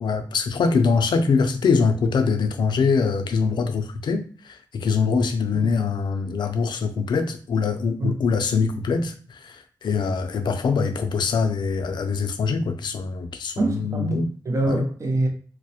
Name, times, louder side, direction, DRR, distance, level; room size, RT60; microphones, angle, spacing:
voice 1, 0.0-14.3 14.7-14.8, left 5 dB, 80° left, 0.4 m, -23 dB
voice 2, 13.6-15.3, right 2 dB, 40° right, 0.6 m, -25 dB
2.3 x 2.0 x 2.7 m
wide cardioid pair, 85°, 8 cm